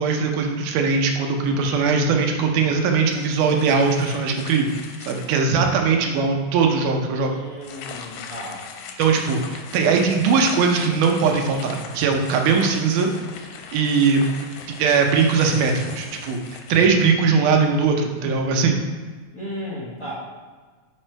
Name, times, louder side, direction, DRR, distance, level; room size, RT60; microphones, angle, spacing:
voice 1, 0.0-4.7 5.1-7.3 9.0-13.1 13.7-14.5 14.8-16.4 16.7-18.8, right 5 dB, 75° right, 3 dB, 2.1 m, -20 dB
sound 1, 3.1-5.6 6.2-6.3 7.6-17.4, left 6 dB, 85° left, 2.3 m, -40 dB
voice 2, 7.2-8.6 19.3-20.1, equal, 70° left, -7 dB, 0.9 m, -34 dB
5.3 x 4.8 x 4.4 m, 1.4 s
omnidirectional pair, 3.9 m